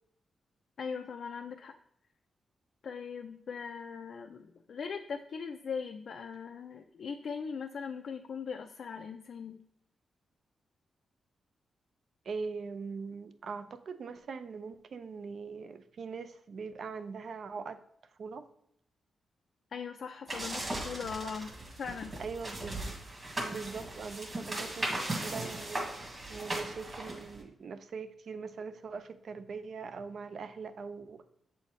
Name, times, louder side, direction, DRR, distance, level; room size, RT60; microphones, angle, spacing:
voice 1, 0.8-1.7 2.8-9.6 19.7-21.5 21.8-22.1, left 6 dB, 60° left, 4 dB, 0.4 m, -40 dB
voice 2, 12.3-17.8 18.2-18.5 21.2-21.3 22.2-23.0 23.4-31.3, right 5 dB, 60° right, 11 dB, 0.5 m, -42 dB
sound 1, 20.3-27.4, right 1 dB, 30° right, 1.7 m, -38 dB
7.7 x 4.2 x 3.1 m, 0.76 s
wide cardioid pair, 125°, 0 cm